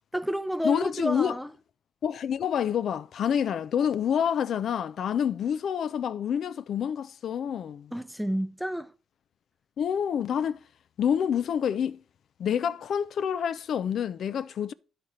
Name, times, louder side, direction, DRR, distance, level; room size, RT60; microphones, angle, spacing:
voice 1, 0.1-1.5 7.9-8.9, equal, ahead, 0.6 m, -30 dB
voice 2, 0.6-1.4 2.0-7.9 9.8-10.6 11.0-12.0 12.4-14.7, left 8 dB, 65° left, 0.3 m, -27 dB
10.0 x 4.3 x 4.9 m
cardioid pair, 90°, 0 cm